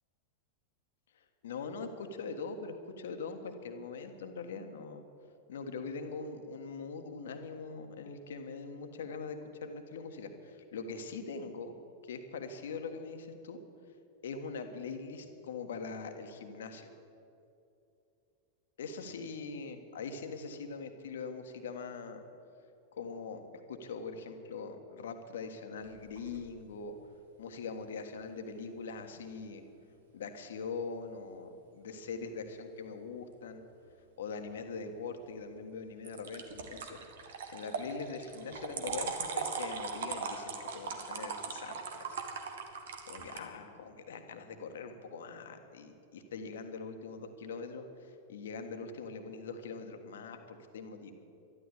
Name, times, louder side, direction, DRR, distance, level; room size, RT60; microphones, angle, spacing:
voice 1, 1.2-5.0 5.5-11.7 12.0-13.6 14.2-16.9 18.8-22.2 22.9-26.9 27.4-29.6 30.1-33.6 34.2-37.0 37.5-42.2 43.0-51.1, left 4 dB, 65° left, 7 dB, 1.5 m, -42 dB
sound 1, 25.8-26.5 36.0-43.4, right 5 dB, 65° right, 1.6 m, -39 dB
12.5 x 12.5 x 8.3 m, 2.7 s
figure-of-eight pair, 90°, 0 cm